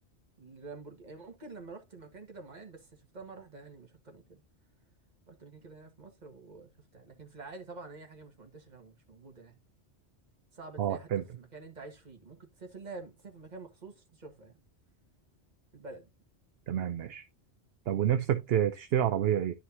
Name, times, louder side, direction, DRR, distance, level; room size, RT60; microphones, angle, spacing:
voice 1, 0.4-4.4 5.3-9.6 10.5-14.6 15.7-16.1, right 3 dB, 40° right, 1.6 m, -48 dB
voice 2, 10.8-11.2 16.7-17.2 17.9-19.6, right 10 dB, 70° right, 0.8 m, -28 dB
11.0 x 4.9 x 2.7 m
omnidirectional pair, 1.1 m